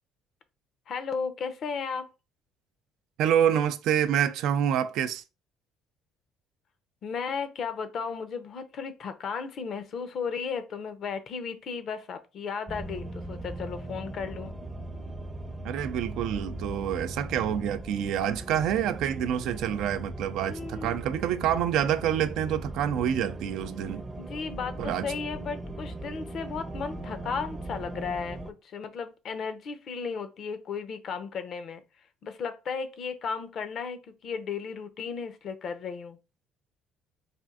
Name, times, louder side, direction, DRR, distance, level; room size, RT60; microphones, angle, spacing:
voice 1, 0.9-2.1 7.0-14.5 20.5-21.0 24.2-31.8 32.2-36.2, left 5 dB, 55° left, 0.6 m, -35 dB
voice 2, 3.2-5.2 15.6-24.0 24.8-25.1, right 9 dB, 75° right, 0.3 m, -27 dB
sound 1, 12.7-28.5, right 1 dB, 20° right, 0.6 m, -39 dB
4.2 x 2.5 x 2.4 m
supercardioid pair, 80°, 0 cm